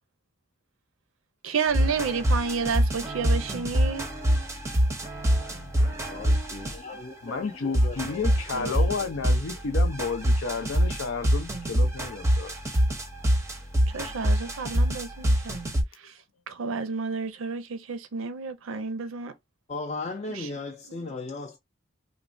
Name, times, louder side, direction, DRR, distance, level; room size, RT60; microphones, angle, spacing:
voice 1, 1.4-4.1 8.2-8.7 13.9-15.6 16.0-16.1 16.5-19.3 20.3-20.5 20.9-21.1, right 5 dB, 80° right, 0.5 m, -31 dB
sound 1, 1.7-7.0 7.7-15.8, equal, 15° right, 0.6 m, -24 dB
voice 2, 5.4-6.0 7.2-12.6 14.0-14.1, left 4 dB, 85° left, 0.6 m, -32 dB
voice 3, 6.0-8.2 8.6-9.1 19.7-21.6, left 3 dB, 35° left, 0.4 m, -37 dB
3.1 x 2.1 x 2.5 m
head